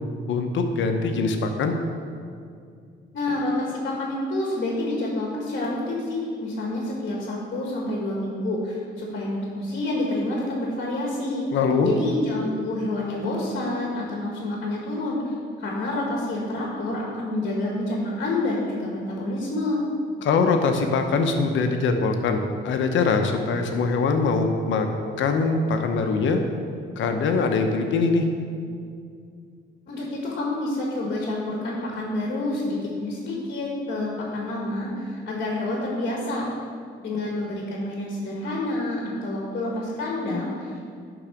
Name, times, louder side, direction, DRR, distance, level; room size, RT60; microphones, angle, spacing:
voice 1, 0.3-1.8 11.5-11.9 20.2-24.9 25.2-26.4 27.0-28.3, left 4 dB, 70° left, 5 dB, 0.9 m, -22 dB
voice 2, 3.1-11.5 11.8-15.2 15.6-19.8 29.9-36.4 37.0-40.8, left 2 dB, 55° left, -3 dB, 1.6 m, -28 dB
10.0 x 4.0 x 6.0 m, 2.3 s
cardioid pair, 90°, 20 cm